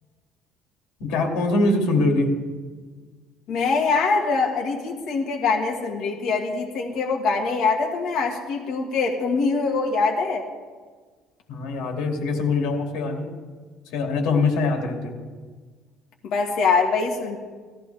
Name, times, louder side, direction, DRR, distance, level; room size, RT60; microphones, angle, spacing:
voice 1, 1.0-2.4 11.5-13.4 13.9-15.1, left 3 dB, 80° left, 2 dB, 2.5 m, -23 dB
voice 2, 3.5-10.4 16.2-17.4, left 4 dB, 60° left, 1 dB, 1.7 m, -23 dB
19.0 x 14.0 x 3.4 m, 1.5 s
cardioid pair, 150°, 0 cm